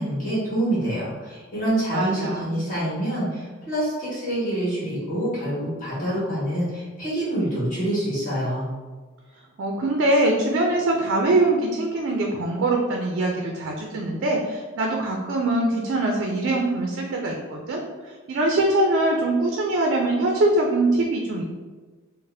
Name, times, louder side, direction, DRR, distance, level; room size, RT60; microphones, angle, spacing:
voice 1, 0.0-8.7, right 1 dB, 40° left, -8 dB, 1.5 m, -26 dB
voice 2, 1.9-2.6 9.6-21.4, right 2 dB, 55° right, 0 dB, 0.4 m, -23 dB
3.9 x 2.0 x 2.6 m, 1.4 s
head